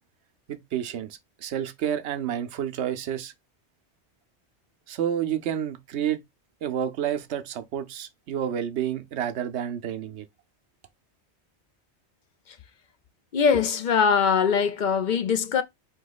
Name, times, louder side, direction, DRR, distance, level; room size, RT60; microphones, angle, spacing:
voice 1, 0.5-3.3 4.9-6.2 6.6-10.3, right 9 dB, 85° right, 0.9 m, -30 dB
voice 2, 13.3-15.6, left 6 dB, 55° left, 0.6 m, -22 dB
4.3 x 2.9 x 3.9 m
omnidirectional pair, 1.1 m